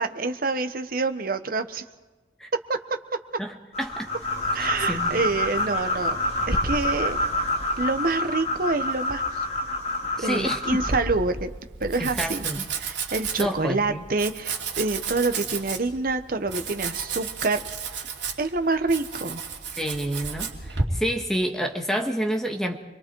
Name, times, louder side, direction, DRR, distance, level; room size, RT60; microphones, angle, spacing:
voice 1, 0.0-1.8 2.7-2.8 4.5-6.2 6.5-7.2 7.8-9.2 10.2-11.5 11.8-12.5 12.8-17.6 18.4-19.4, right 3 dB, 50° right, 8 dB, 1.1 m, -27 dB
voice 2, 3.4-4.1 4.6-5.2 10.2-10.8 12.0-12.7 13.4-14.0 19.8-22.8, equal, 5° left, 3 dB, 1.7 m, -29 dB
sound 1, 3.7-10.9, left 1 dB, 35° left, 3.2 m, -27 dB
Domestic sounds home sounds, 10.7-20.8, right 5 dB, 75° right, 2.8 m, -33 dB
29.0 x 22.5 x 4.7 m, 1.2 s
head